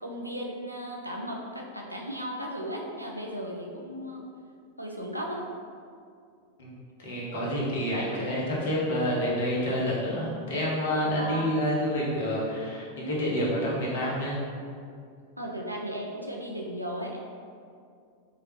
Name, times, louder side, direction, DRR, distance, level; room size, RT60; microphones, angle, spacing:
voice 1, 0.0-4.2 4.8-5.5 8.1-8.2 11.0-11.5 15.4-17.2, equal, 90° right, -1 dB, 0.4 m, -36 dB
voice 2, 7.0-14.4, equal, 60° left, -5 dB, 0.9 m, -28 dB
3.2 x 2.8 x 3.0 m, 2.3 s
figure-of-eight pair, 90°, 0 cm